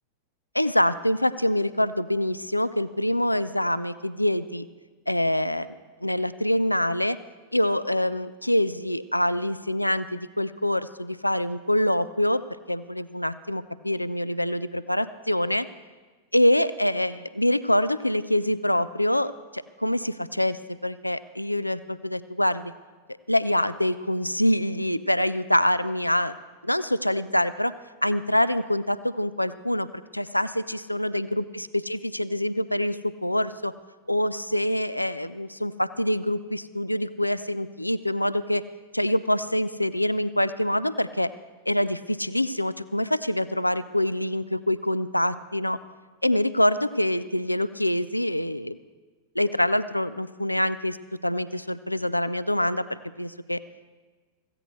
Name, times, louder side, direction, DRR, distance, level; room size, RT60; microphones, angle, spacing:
voice 1, 0.5-4.7 5.1-5.7 6.0-7.2 7.5-15.7 16.3-22.7 23.3-26.3 26.6-27.7 28.0-29.9 30.1-33.0 33.2-33.7 34.1-38.6 38.9-41.3 41.7-45.8 46.2-48.8 49.4-51.0 51.2-53.6, left 1 dB, 85° left, 15 dB, 0.3 m, -25 dB
16.0 x 15.0 x 3.2 m, 1.4 s
figure-of-eight pair, 90°, 0 cm